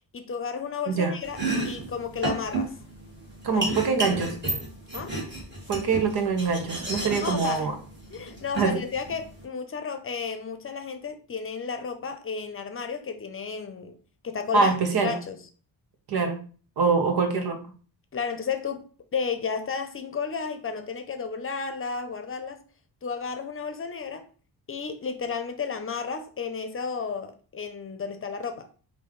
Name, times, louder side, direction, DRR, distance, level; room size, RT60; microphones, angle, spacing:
voice 1, 0.1-2.7 3.5-3.8 4.9-5.1 7.2-7.7 8.1-14.0 14.2-14.7 15.0-15.4 18.1-22.6 23.0-24.3 24.7-28.7, left 5 dB, 35° left, 0.7 m, -32 dB
Domestic sounds home sounds, 1.2-9.4, right 2 dB, 30° right, 2.1 m, -32 dB
voice 2, 3.4-4.3 5.7-7.8 8.6-8.8 14.5-15.1 16.1-16.4 16.8-17.6, right 4 dB, 80° right, 1.1 m, -24 dB
5.3 x 2.7 x 3.2 m
cardioid pair, 100°, 37 cm